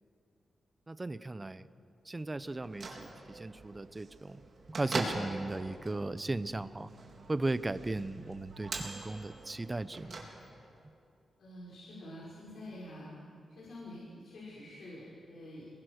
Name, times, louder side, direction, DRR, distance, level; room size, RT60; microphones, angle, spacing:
voice 1, 0.9-1.7 2.0-4.4 4.7-6.9 7.3-10.2, right 2 dB, 20° right, 14 dB, 0.7 m, -36 dB
Bell / Microwave oven, 2.5-10.8, right 3 dB, 50° right, 3.8 m, -43 dB
voice 2, 11.4-13.1 13.5-15.7, left 1 dB, 70° left, -7 dB, 5.8 m, -47 dB
28.5 x 22.0 x 6.6 m, 2.5 s
wide cardioid pair, 115°, 0 cm